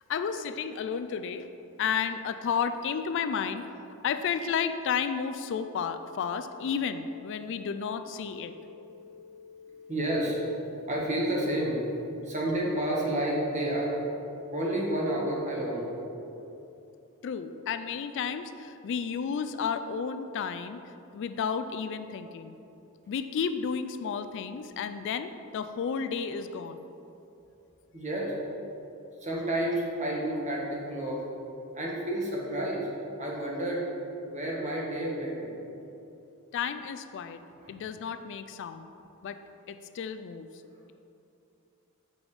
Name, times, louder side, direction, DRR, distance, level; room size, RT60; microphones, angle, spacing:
voice 1, 0.0-1.5 1.8-3.7 4.0-8.5 17.2-22.6 23.1-26.8 36.5-37.4 37.7-38.9 39.2-39.4 39.7-40.5, left 6 dB, 55° left, 10 dB, 0.3 m, -32 dB
sound 1, 6.6-16.6, left 5 dB, 70° right, 0.9 m, -50 dB
voice 2, 9.9-10.4 10.9-11.8 12.2-14.0 14.5-15.9 27.9-28.3 29.2-31.2 31.7-32.9 33.2-33.9 34.3-35.5 37.6-37.7, right 1 dB, 35° right, -3 dB, 1.4 m, -30 dB
7.0 x 5.3 x 4.8 m, 2.9 s
head